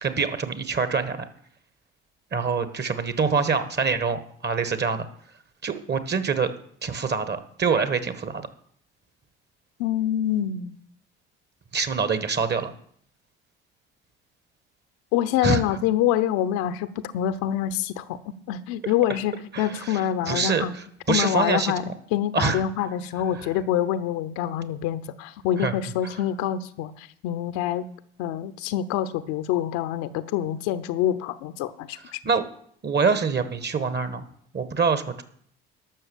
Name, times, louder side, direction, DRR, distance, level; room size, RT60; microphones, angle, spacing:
voice 1, 0.0-1.2 2.3-5.1 5.6-6.5 6.8-8.5 11.7-12.7 15.4-15.6 19.5-21.7 22.3-22.6 23.3-23.5 25.6-25.7 26.0-26.2 32.2-32.4 32.8-34.2 34.5-35.2, right 5 dB, 35° right, 11 dB, 1.6 m, -25 dB
voice 2, 9.8-10.8 15.1-20.7 21.1-27.8 28.2-32.2, left 11 dB, 70° left, 14 dB, 0.8 m, -26 dB
12.0 x 6.6 x 7.2 m, 0.64 s
hypercardioid pair, 55°, 30 cm